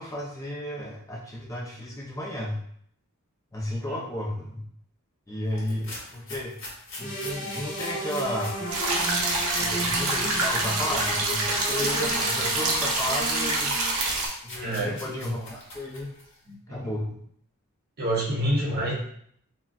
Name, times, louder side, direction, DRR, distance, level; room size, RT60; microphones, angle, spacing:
voice 1, 0.0-2.6 3.5-4.6 5.3-6.6 7.0-8.6 9.6-13.8 14.4-16.1 16.7-17.1 18.6-18.7, left 1 dB, 15° left, -4 dB, 0.4 m, -33 dB
sound 1, 5.5-11.0 11.4-16.4, left 1 dB, 60° left, 1.1 m, -42 dB
sound 2, 7.0-14.1, equal, 35° left, 0.8 m, -33 dB
sound 3, 8.7-14.3, right 2 dB, 70° right, 0.6 m, -26 dB
voice 2, 14.6-15.1 16.5-16.9 18.0-18.9, right 1 dB, 45° right, -4 dB, 0.8 m, -28 dB
3.6 x 2.1 x 2.3 m, 0.66 s
head